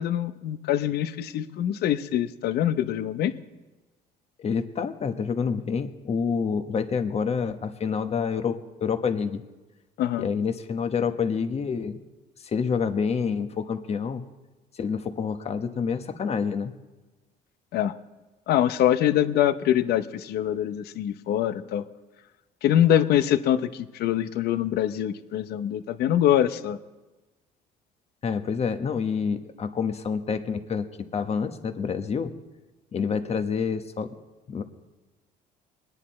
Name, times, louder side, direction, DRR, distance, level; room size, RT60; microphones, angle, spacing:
voice 1, 0.0-3.3 10.0-10.3 17.7-17.9 18.5-21.8 22.6-26.8, left 11 dB, 70° left, 11 dB, 0.7 m, -24 dB
voice 2, 4.4-9.4 10.2-12.0 12.4-14.2 14.7-16.7 28.2-30.9 31.1-32.3 32.9-34.2 34.5-34.6, left 6 dB, 40° left, 8 dB, 1.1 m, -28 dB
23.0 x 10.0 x 4.2 m, 1.2 s
cardioid pair, 110°, 17 cm